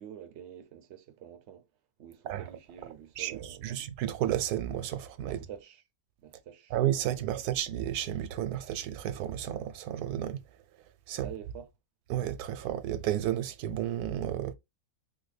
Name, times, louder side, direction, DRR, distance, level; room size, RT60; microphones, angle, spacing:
voice 1, 0.0-1.6 2.0-3.8 5.2-5.8 6.2-6.8 11.2-11.7, right 10 dB, 65° right, 0.7 m, -47 dB
voice 2, 3.2-5.4 6.7-10.4 11.1-11.3 12.1-14.5, right 11 dB, 90° right, 1.1 m, -32 dB
3.3 x 2.2 x 3.2 m
omnidirectional pair, 1.6 m